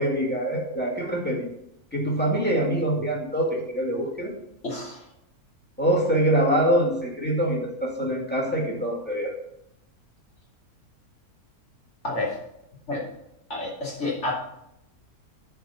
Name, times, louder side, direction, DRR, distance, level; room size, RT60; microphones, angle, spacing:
voice 1, 0.0-1.5 1.9-4.3 5.8-9.3, right 1 dB, 5° left, -1 dB, 1.9 m, -24 dB
voice 2, 4.6-5.0 12.0-12.3 12.9-13.0 13.5-14.3, left 2 dB, 45° left, -5 dB, 2.8 m, -29 dB
10.5 x 4.6 x 5.7 m, 0.79 s
omnidirectional pair, 1.6 m